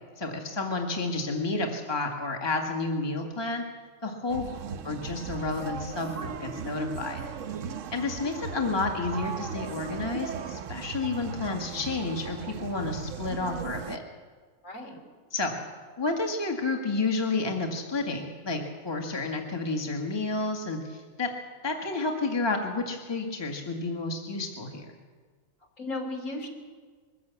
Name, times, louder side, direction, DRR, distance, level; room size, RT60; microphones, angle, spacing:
voice 1, 0.2-3.6 4.0-4.5 4.8-7.2 7.9-14.0 15.3-15.6 16.0-21.3 21.6-24.9, left 3 dB, 15° left, 2 dB, 1.8 m, -30 dB
sound 1, 4.3-14.0, right 6 dB, 60° right, 1.1 m, -37 dB
voice 2, 14.6-15.0 25.8-26.5, left 2 dB, 60° left, 3 dB, 3.4 m, -35 dB
22.0 x 14.5 x 8.3 m, 1.5 s
omnidirectional pair, 1.6 m